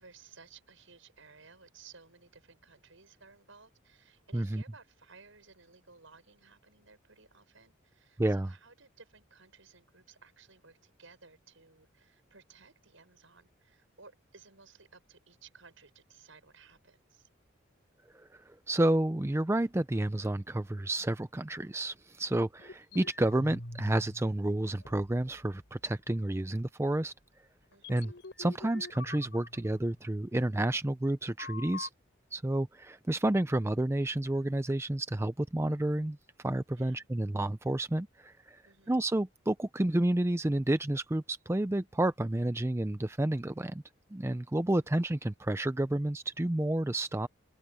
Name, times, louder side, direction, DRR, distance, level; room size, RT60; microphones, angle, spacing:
voice 1, 0.0-17.3 27.7-28.2 36.8-37.1 38.6-39.0 44.7-45.0, right 4 dB, 75° right, 6.8 m, -58 dB
voice 2, 4.3-4.6 8.2-8.5 18.1-27.1 27.9-28.1 28.4-31.9 32.3-38.6 38.9-43.8 44.1-47.3, right 1 dB, 15° right, 0.5 m, -30 dB
sound 1, 22.6-24.4 24.7-25.6 26.1-26.2 26.8-27.0 27.7-30.3 31.4-31.9, left 3 dB, 60° left, 3.7 m, -46 dB
open air
head